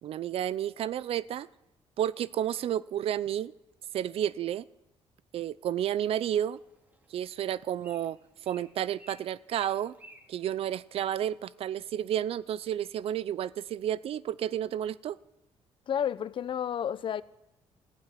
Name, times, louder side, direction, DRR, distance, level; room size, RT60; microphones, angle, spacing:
voice 1, 0.0-1.5 2.0-3.5 3.9-4.7 5.3-6.6 7.1-8.2 8.5-9.9 10.3-15.2, right 10 dB, 65° right, 0.6 m, -31 dB
Bird, 6.3-11.4, equal, 15° right, 2.4 m, -57 dB
voice 2, 15.9-17.2, left 9 dB, 55° left, 0.7 m, -31 dB
15.0 x 9.0 x 10.0 m
cardioid pair, 105°, 11 cm